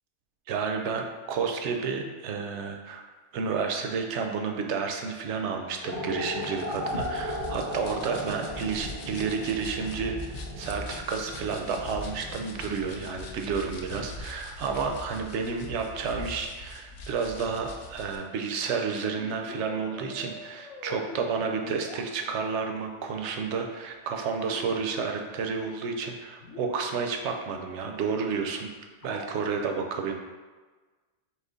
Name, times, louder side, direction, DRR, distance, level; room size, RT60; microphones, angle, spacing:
voice 1, 0.5-3.0 3.3-28.7 29.0-30.1, right 5 dB, 70° right, 3 dB, 0.9 m, -31 dB
sound 1, 5.8-12.9, equal, 15° left, 0.5 m, -36 dB
sound 2, 6.4-18.2, left 2 dB, 60° left, 0.6 m, -41 dB
sound 3, 18.9-22.6 24.4-25.3 25.6-25.7 26.1-26.2 26.4-27.3 29.0-29.5, left 4 dB, 80° left, 1.0 m, -44 dB
4.2 x 2.9 x 3.8 m, 1.4 s
omnidirectional pair, 1.3 m